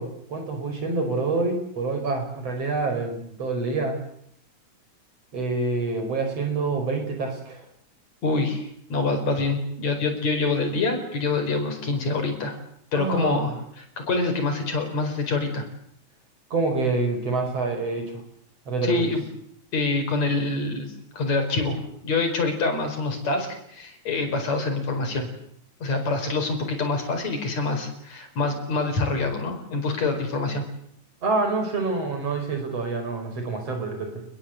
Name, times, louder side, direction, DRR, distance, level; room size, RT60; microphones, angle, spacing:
voice 1, 0.0-4.0 5.3-7.6 12.9-13.5 16.5-18.2 18.7-19.1 31.2-34.2, right 3 dB, 55° right, 5 dB, 6.2 m, -27 dB
voice 2, 8.2-12.6 12.9-15.7 18.8-19.2 19.7-25.3 25.8-30.6, left 3 dB, 65° left, 5 dB, 6.1 m, -26 dB
28.5 x 21.5 x 8.0 m, 0.69 s
omnidirectional pair, 3.3 m